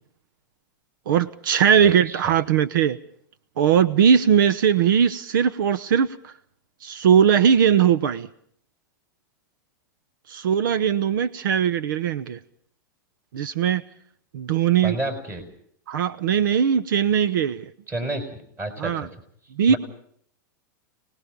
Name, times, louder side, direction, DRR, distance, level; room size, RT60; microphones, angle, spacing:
voice 1, 1.1-3.0 3.6-6.3 6.8-8.3 10.3-12.4 13.3-13.8 14.3-15.0 15.9-17.6 18.8-19.1 19.6-19.7, right 8 dB, 75° right, 1.0 m, -20 dB
voice 2, 1.8-2.3 14.8-15.4 17.9-18.2 18.6-19.1 19.7-19.8, right 1 dB, 20° right, 6.1 m, -30 dB
29.0 x 20.0 x 5.3 m
supercardioid pair, 140°, 11 cm